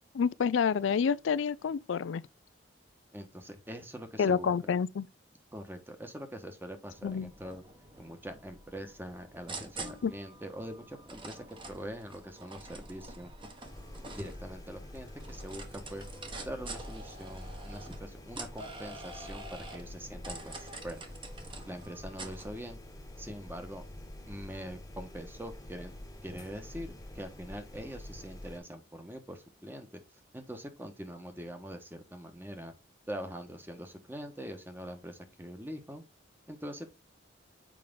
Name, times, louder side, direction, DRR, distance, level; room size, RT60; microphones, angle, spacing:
voice 1, 0.1-2.2 4.2-5.1 7.0-7.3 10.0-10.1, left 6 dB, 80° left, 0.4 m, -28 dB
voice 2, 3.1-4.5 5.5-7.6 8.0-13.3 14.1-16.0 16.4-21.0 21.7-22.8 23.2-23.8 24.3-25.9 26.2-30.0 30.3-32.7 33.1-36.0 36.5-36.9, equal, 10° right, 1.2 m, -43 dB
sound 1, 6.9-22.5, right 2 dB, 25° right, 1.2 m, -47 dB
sound 2, 13.6-28.6, left 1 dB, 20° left, 1.2 m, -47 dB
7.5 x 5.0 x 3.6 m
head